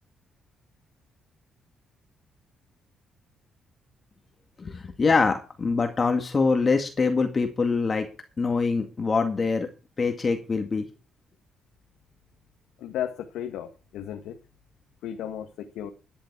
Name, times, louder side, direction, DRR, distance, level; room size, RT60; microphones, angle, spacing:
voice 1, 4.6-8.1 8.4-9.7 10.0-10.9, left 4 dB, 35° left, 2.1 m, -24 dB
voice 2, 12.8-14.4 15.0-15.9, left 10 dB, 90° left, 1.7 m, -34 dB
14.0 x 10.5 x 4.8 m
cardioid pair, 90°, 0 cm